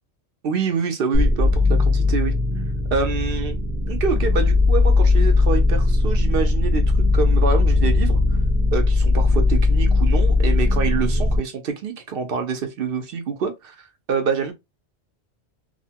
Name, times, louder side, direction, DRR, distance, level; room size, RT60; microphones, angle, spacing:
voice 1, 0.4-2.3 2.9-3.6 3.9-6.8 7.1-8.2 8.7-13.7 14.1-14.5, right 5 dB, 60° right, 0.8 m, -26 dB
sound 1, 1.1-11.4, left 3 dB, 15° right, 0.7 m, -18 dB
2.8 x 2.1 x 2.8 m
omnidirectional pair, 1.1 m